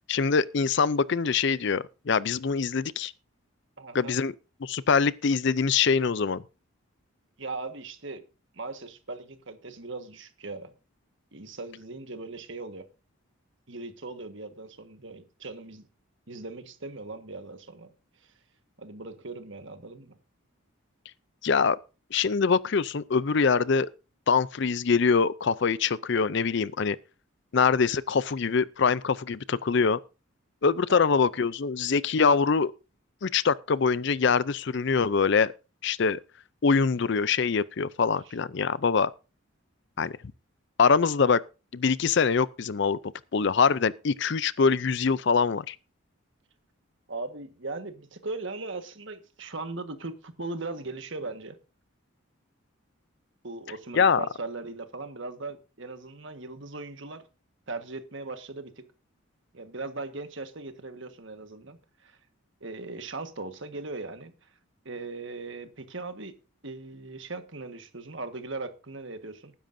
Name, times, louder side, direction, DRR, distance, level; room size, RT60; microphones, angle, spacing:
voice 1, 0.1-3.1 3.9-4.3 4.6-6.4 21.4-21.8 22.1-23.9 24.3-27.0 27.5-30.0 30.6-32.7 33.2-35.5 35.8-36.2 36.6-39.1 40.0-40.1 40.8-41.4 41.7-43.0 43.3-45.8 53.9-54.3, left 5 dB, 55° left, 0.5 m, -24 dB
voice 2, 3.8-4.2 7.4-8.2 8.5-10.7 11.3-12.9 13.7-15.8 16.3-17.9 18.2-18.3 18.8-20.2 30.9-31.2 38.3-38.4 47.1-51.6 53.4-57.2 57.7-58.8 59.5-62.2 62.6-64.5 64.8-66.3 66.6-69.5, right 3 dB, 60° right, 1.5 m, -39 dB
19.5 x 10.5 x 2.7 m
head